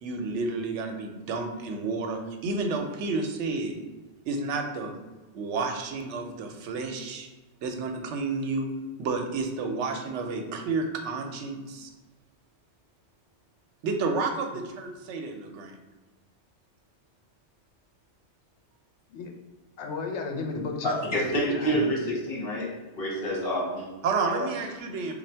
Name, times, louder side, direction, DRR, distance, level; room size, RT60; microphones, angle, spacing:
voice 1, 0.0-3.8 4.3-4.9 5.3-7.3 7.6-8.7 9.0-11.9 13.8-15.8 24.0-25.2, right 4 dB, 75° right, 4 dB, 0.9 m, -31 dB
voice 2, 19.8-21.9, left 4 dB, 75° left, 3 dB, 0.8 m, -34 dB
voice 3, 20.8-22.7 22.9-23.8 24.2-24.5, equal, 55° left, -4 dB, 1.2 m, -28 dB
3.3 x 2.3 x 4.3 m, 1.2 s
omnidirectional pair, 1.2 m